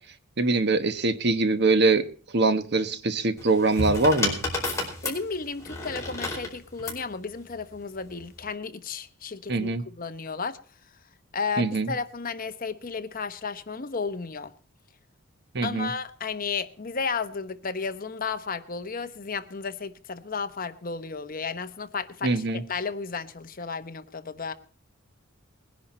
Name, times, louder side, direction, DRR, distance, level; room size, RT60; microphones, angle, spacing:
voice 1, 0.4-2.1 2.3-4.4 9.5-9.8 11.6-11.9 15.5-15.9 22.2-22.6, right 3 dB, 50° right, 1.2 m, -23 dB
sound 1, 3.4-7.0 8.1-8.5, left 2 dB, 15° left, 4.6 m, -31 dB
voice 2, 5.0-10.6 11.3-14.5 15.6-22.4 22.7-24.6, left 5 dB, 40° left, 0.9 m, -33 dB
20.5 x 10.5 x 4.3 m
head